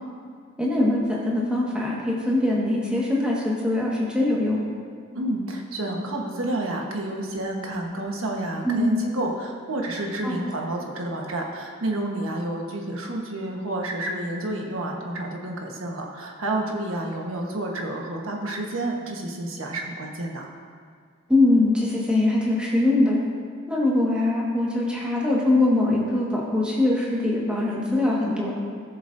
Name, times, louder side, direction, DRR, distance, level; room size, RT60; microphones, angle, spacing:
voice 1, 0.6-4.6 8.6-9.0 10.2-10.4 21.3-23.2 23.7-28.5, left 2 dB, 5° right, -5 dB, 1.6 m, -22 dB
voice 2, 5.1-20.5, right 1 dB, 80° right, 0 dB, 1.3 m, -29 dB
17.5 x 7.2 x 2.7 m, 2.1 s
head